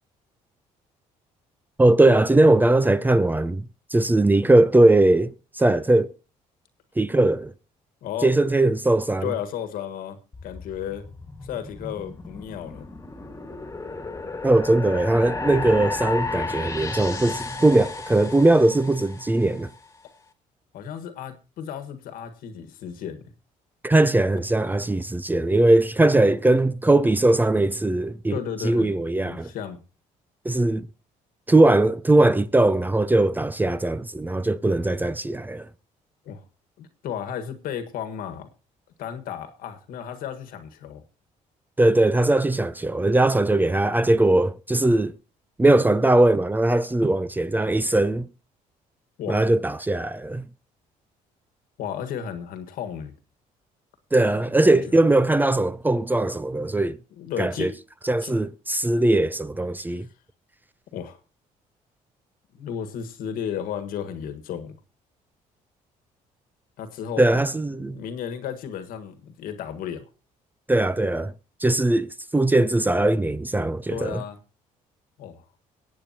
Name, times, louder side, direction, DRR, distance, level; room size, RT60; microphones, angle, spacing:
voice 1, 1.8-3.6 3.9-6.1 7.0-7.5 8.2-9.3 14.4-19.7 23.8-29.5 30.5-30.9 31.5-35.7 41.8-45.1 45.6-48.3 49.3-50.5 54.1-57.0 57.4-57.7 58.1-60.1 67.2-68.0 70.7-71.3 71.6-74.2, right 2 dB, 15° right, 0.5 m, -20 dB
voice 2, 9.2-11.1 11.4-12.9 20.7-23.2 28.3-28.9 29.2-29.8 34.6-34.7 36.2-36.4 36.8-38.5 39.0-41.0 49.2-49.4 51.8-53.1 54.6-54.8 57.2-57.8 58.2-58.3 59.8-60.0 60.9-61.2 62.5-64.8 66.8-67.4 67.7-70.0 73.9-74.4 75.2-75.4, left 8 dB, 80° left, 1.6 m, -34 dB
sound 1, 10.3-19.7, left 3 dB, 20° left, 1.7 m, -34 dB
22.0 x 8.5 x 2.8 m
cardioid pair, 90°, 15 cm